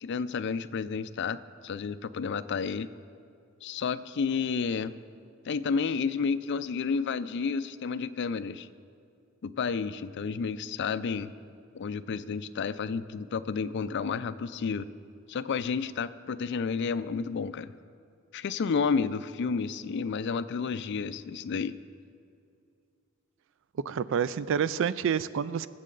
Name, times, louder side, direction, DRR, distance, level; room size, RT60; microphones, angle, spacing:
voice 1, 0.0-1.4 1.6-2.9 3.6-4.9 5.5-8.7 9.4-11.3 11.7-14.9 15.3-17.7 18.3-21.7, left 5 dB, 55° left, 13 dB, 0.4 m, -31 dB
voice 2, 23.9-25.7, right 7 dB, 65° right, 16 dB, 0.3 m, -28 dB
21.5 x 7.4 x 3.9 m, 2.4 s
head